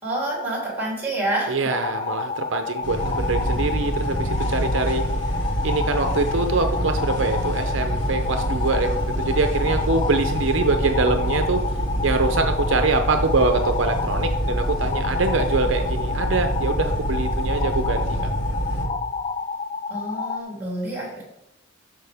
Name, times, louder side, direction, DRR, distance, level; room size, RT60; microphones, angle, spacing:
voice 1, 0.0-1.7 19.9-21.2, right 1 dB, 10° right, -4 dB, 3.2 m, -28 dB
voice 2, 1.5-5.0 5.6-11.6 12.0-18.0, right 3 dB, 70° right, 6 dB, 0.6 m, -24 dB
sound 1, 1.7-20.4, left 4 dB, 30° left, 0.3 m, -30 dB
sound 2, 2.8-18.8, right 1 dB, 70° left, 2.2 m, -26 dB
12.5 x 4.7 x 3.5 m, 0.87 s
head